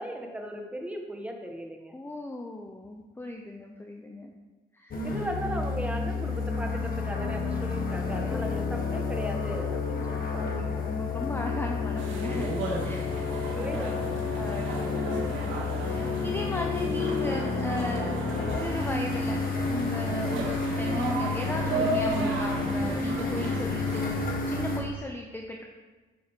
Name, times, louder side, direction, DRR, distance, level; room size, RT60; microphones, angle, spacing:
voice 1, 0.0-1.9 4.9-10.8 13.5-14.2, right 1 dB, 5° right, 2 dB, 1.4 m, -37 dB
voice 2, 1.9-4.3 4.7-5.1 8.3-8.5 10.4-15.5 15.8-25.7, left 1 dB, 10° left, 1 dB, 0.7 m, -37 dB
sound 1, 4.9-24.8, left 4 dB, 45° left, 1.6 m, -30 dB
sound 2, 12.0-24.3, right 2 dB, 75° right, 2.0 m, -34 dB
8.8 x 6.4 x 3.7 m, 1.3 s
cardioid pair, 90°, 20 cm